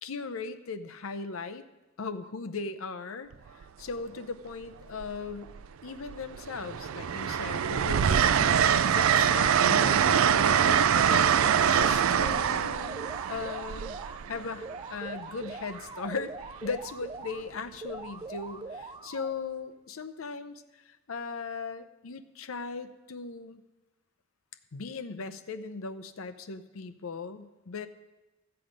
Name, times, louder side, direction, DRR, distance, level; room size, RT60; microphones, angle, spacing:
voice 1, 0.0-1.6 2.0-3.3 3.8-5.5 5.8-11.4 11.6-14.0 14.3-16.3 16.6-23.6 24.7-27.9, left 4 dB, 85° left, 10 dB, 0.7 m, -38 dB
Train, 3.3-3.6 4.9-5.7 6.1-14.8 16.4-16.7, right 8 dB, 80° right, 0.4 m, -24 dB
sound 1, 9.8-11.0 11.4-14.2 14.6-17.4 17.8-19.4, right 3 dB, 20° right, 0.4 m, -42 dB
14.0 x 7.8 x 5.2 m, 1.1 s
head